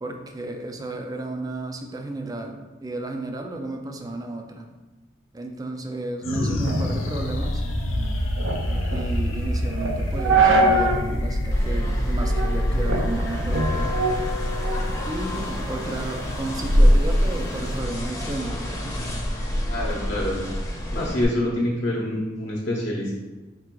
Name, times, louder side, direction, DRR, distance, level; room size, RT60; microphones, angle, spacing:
voice 1, 0.0-4.7 5.3-7.6 8.9-13.9 15.0-19.0, right 2 dB, 20° right, 4 dB, 0.4 m, -33 dB
sound 1, 6.2-16.9, left 1 dB, 80° left, 0.5 m, -26 dB
sound 2, 6.6-11.1 11.5-11.6 12.2-12.6 12.9-15.0 15.4-17.8, right 1 dB, 75° right, 0.6 m, -22 dB
sound 3, 11.5-21.2, left 1 dB, 15° left, 0.8 m, -30 dB
voice 2, 19.7-20.4 20.9-23.1, left 1 dB, 50° left, -4 dB, 0.8 m, -26 dB
4.5 x 2.5 x 4.5 m, 1.2 s
head